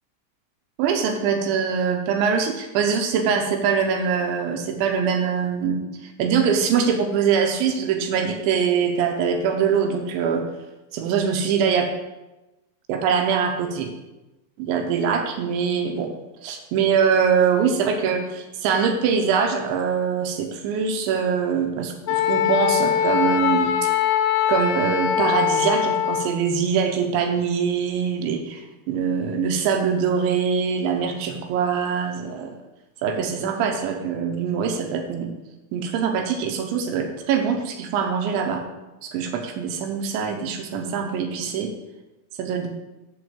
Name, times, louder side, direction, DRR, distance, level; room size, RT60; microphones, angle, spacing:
voice 1, 0.8-10.4 10.9-11.9 12.9-13.9 14.6-16.1 16.4-23.7 24.5-32.5 33.0-35.3 35.7-38.6 39.0-41.7 42.4-42.7, right 6 dB, 80° right, 4 dB, 2.9 m, -23 dB
Wind instrument woodwind instrument, 22.1-26.3, left 9 dB, 85° left, 3.3 m, -22 dB
7.2 x 6.3 x 7.0 m, 1.0 s
omnidirectional pair, 5.9 m